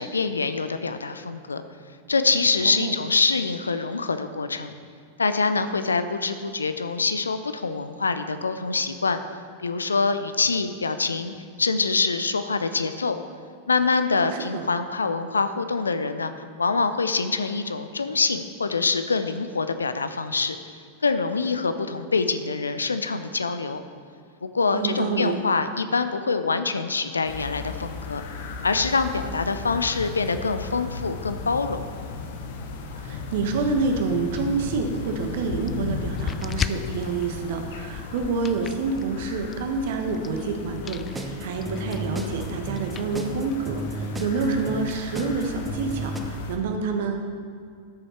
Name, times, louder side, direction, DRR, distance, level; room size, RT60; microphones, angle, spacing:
voice 1, 0.0-1.6 2.1-4.7 5.2-9.2 9.6-13.2 13.7-16.3 16.6-20.6 21.0-23.8 24.4-28.2 28.6-31.8, left 4 dB, 75° left, 10 dB, 0.5 m, -25 dB
voice 2, 14.3-14.7 24.7-25.3 33.0-47.2, right 4 dB, 55° right, 4 dB, 1.2 m, -28 dB
sound 1, 27.2-46.6, left 4 dB, 55° left, 1.0 m, -36 dB
sound 2, 33.8-45.9, left 7 dB, 25° left, 0.3 m, -39 dB
sound 3, 41.1-46.2, right 2 dB, 10° right, 0.9 m, -33 dB
13.0 x 7.0 x 4.5 m, 2.3 s
figure-of-eight pair, 90°, 0 cm